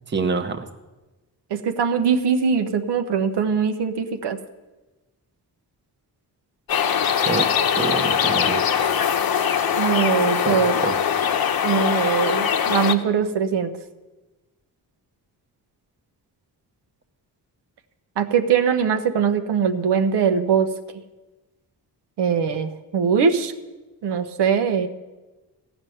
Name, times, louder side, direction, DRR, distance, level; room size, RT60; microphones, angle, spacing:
voice 1, 0.1-0.7 7.3-7.5 7.8-9.0 10.4-11.0, right 4 dB, 25° right, 7 dB, 0.9 m, -27 dB
voice 2, 1.5-4.4 9.8-10.8 11.6-13.7 18.2-20.7 22.2-23.5 24.0-24.9, right 6 dB, 90° right, 7 dB, 1.1 m, -21 dB
sound 1, 6.7-12.9, left 8 dB, 65° left, 1.0 m, -21 dB
16.0 x 6.2 x 9.2 m, 1.1 s
wide cardioid pair, 140°, 40 cm